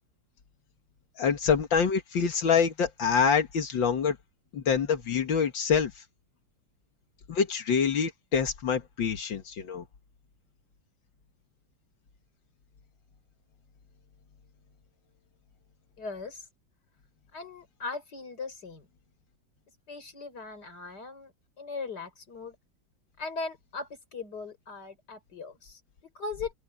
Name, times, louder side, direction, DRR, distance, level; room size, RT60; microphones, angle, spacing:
voice 1, 1.2-4.2 4.5-6.0 7.3-9.8, left 6 dB, 85° left, 2.4 m, -26 dB
voice 2, 16.0-16.5 17.3-18.9 19.9-22.6 23.2-26.5, left 4 dB, 60° left, 5.6 m, -39 dB
open air
omnidirectional pair, 2.0 m